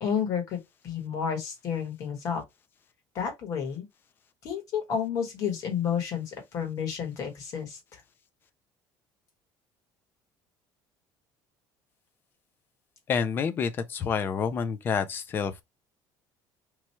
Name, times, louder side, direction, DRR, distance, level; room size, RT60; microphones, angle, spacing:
voice 1, 0.0-2.4 3.1-3.9 4.4-8.0, left 7 dB, 45° left, 1.4 m, -31 dB
voice 2, 13.1-15.6, left 6 dB, 25° left, 0.4 m, -28 dB
3.0 x 2.3 x 4.1 m
cardioid pair, 175°, 8 cm